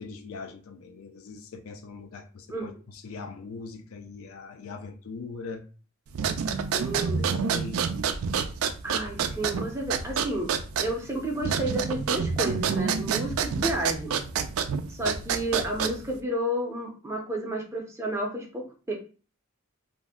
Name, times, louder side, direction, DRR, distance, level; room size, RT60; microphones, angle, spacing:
voice 1, 0.0-5.6 7.2-7.9, left 4 dB, 75° left, 0.4 m, -41 dB
sound 1, 6.1-16.2, right 6 dB, 75° right, 0.3 m, -28 dB
voice 2, 6.7-7.2 8.8-10.5 10.8-14.2 14.9-18.9, right 1 dB, 15° right, 0.5 m, -31 dB
2.6 x 2.1 x 3.4 m
head